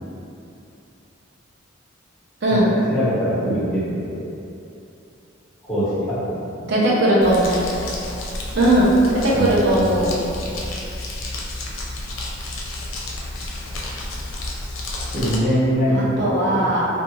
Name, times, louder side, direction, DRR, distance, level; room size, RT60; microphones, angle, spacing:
voice 1, 2.9-4.3 5.7-6.7 9.3-10.0 15.1-16.4, equal, 5° right, -13 dB, 1.0 m, -23 dB
voice 2, 6.7-7.6 8.5-10.2 15.9-16.9, right 1 dB, 55° right, -7 dB, 0.6 m, -18 dB
Crumpling crinkling, 7.2-15.4, left 2 dB, 70° left, 0.5 m, -31 dB
2.4 x 2.4 x 3.0 m, 2.7 s
head